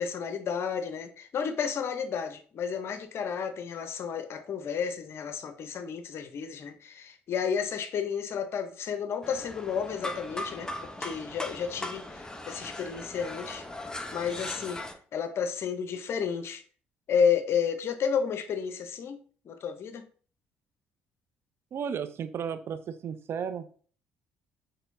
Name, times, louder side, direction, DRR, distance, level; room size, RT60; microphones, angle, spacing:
voice 1, 0.0-13.6 14.1-14.8 15.1-16.6 17.1-19.2 19.4-20.0, left 7 dB, 55° left, 9 dB, 0.6 m, -31 dB
sound 1, 9.2-14.9, left 1 dB, 15° left, 0.7 m, -39 dB
voice 2, 21.7-23.7, right 7 dB, 50° right, 10 dB, 0.4 m, -34 dB
4.3 x 3.2 x 2.6 m, 0.43 s
hypercardioid pair, 50°, 5 cm